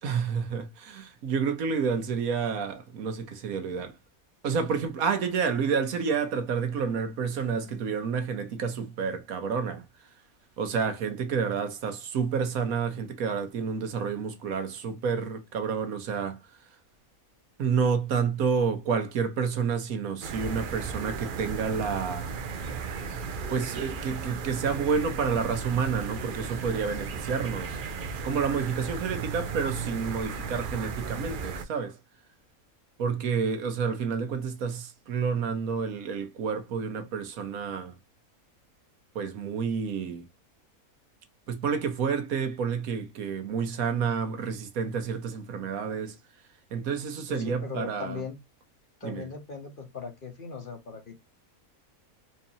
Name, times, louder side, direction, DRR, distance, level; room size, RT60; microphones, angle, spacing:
voice 1, 0.0-4.0 4.4-9.8 10.6-16.4 17.6-22.3 23.5-27.8 28.2-32.0 33.0-37.9 39.1-40.3 41.5-46.2 46.7-48.2 49.0-49.2, right 6 dB, 80° right, 1.3 m, -29 dB
sound 1, 20.2-31.6, right 5 dB, 55° right, 0.6 m, -35 dB
voice 2, 47.3-48.4 49.0-51.2, left 5 dB, 40° left, 1.0 m, -39 dB
4.4 x 2.6 x 2.7 m
omnidirectional pair, 1.5 m